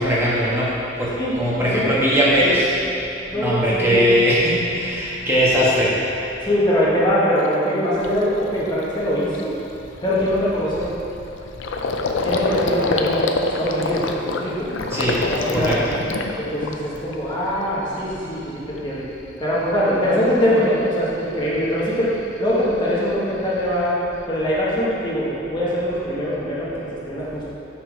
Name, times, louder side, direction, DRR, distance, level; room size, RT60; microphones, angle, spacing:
voice 1, 0.0-2.8 3.3-5.9 14.9-15.2 15.5-16.0, equal, 15° right, -8 dB, 1.3 m, -19 dB
voice 2, 3.3-4.2 6.4-9.5 10.0-10.9 12.2-13.2 13.6-14.7 15.3-15.8 16.4-19.0 19.4-24.0 24.3-27.5, equal, 25° left, -8 dB, 1.2 m, -22 dB
Gurgling, 7.4-7.5 8.0-8.3 8.7-8.8 9.1-17.1 17.5-18.1, left 3 dB, 85° left, 0.5 m, -26 dB
6.7 x 5.9 x 4.6 m, 2.8 s
head